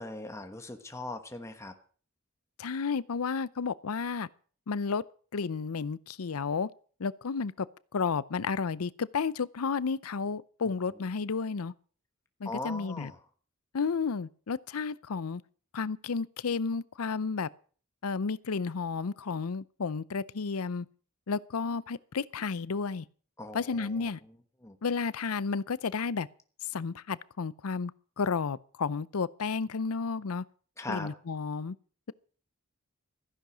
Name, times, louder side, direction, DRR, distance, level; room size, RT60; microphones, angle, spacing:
voice 1, 0.0-1.7 12.4-13.2 23.4-24.4 24.6-24.8 30.8-31.1, left 2 dB, 15° left, 1.2 m, -40 dB
voice 2, 2.6-4.3 4.7-5.0 5.3-6.7 7.0-7.7 7.9-11.7 12.4-13.1 13.7-15.4 15.7-17.5 18.0-20.9 21.3-23.1 23.5-24.2 24.8-26.3 26.7-27.9 28.2-30.4 30.9-31.8, left 5 dB, 90° left, 0.6 m, -32 dB
14.5 x 10.5 x 6.2 m
head